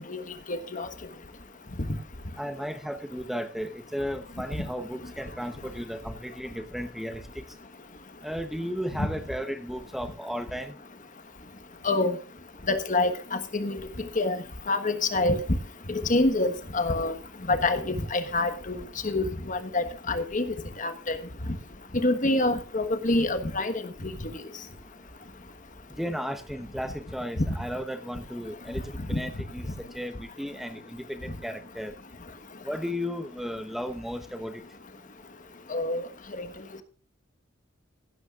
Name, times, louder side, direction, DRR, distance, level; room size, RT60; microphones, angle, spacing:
voice 1, 0.5-0.9 9.0-9.1 11.8-12.2 12.7-13.8 14.2-14.4 14.7-15.4 15.9-17.1 17.5-21.2 21.9-24.1 29.1-29.2 35.7-36.0 36.4-36.5, left 2 dB, 40° left, 1.3 m, -26 dB
voice 2, 2.4-7.4 8.2-10.7 26.0-28.8 29.1-29.7 29.9-31.9 32.6-34.6, equal, ahead, 0.9 m, -34 dB
16.0 x 12.5 x 2.5 m
head